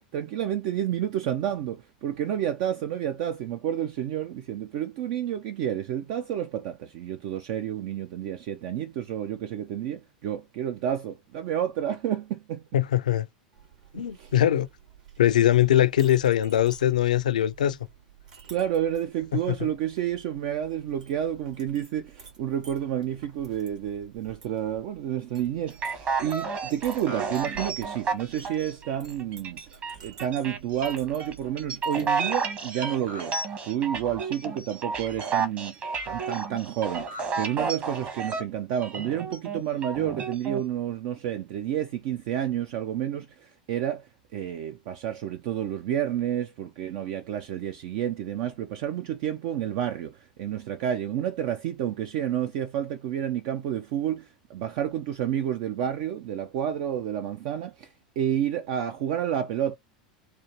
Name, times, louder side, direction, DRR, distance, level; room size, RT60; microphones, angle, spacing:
voice 1, 0.0-12.6 13.9-14.3 18.5-29.6 30.0-33.4 33.6-35.7 36.1-44.1 44.3-59.8, right 10 dB, 50° right, 0.4 m, -30 dB
voice 2, 12.7-13.3 13.9-14.7 15.2-17.8 19.3-19.6, left 11 dB, 70° left, 0.4 m, -22 dB
Chink clink, 13.5-32.1, right 8 dB, 70° right, 2.6 m, -51 dB
sound 1, 25.7-38.4 38.8-40.6, right 5 dB, 35° right, 1.2 m, -31 dB
4.3 x 2.5 x 2.9 m
figure-of-eight pair, 85°, 4 cm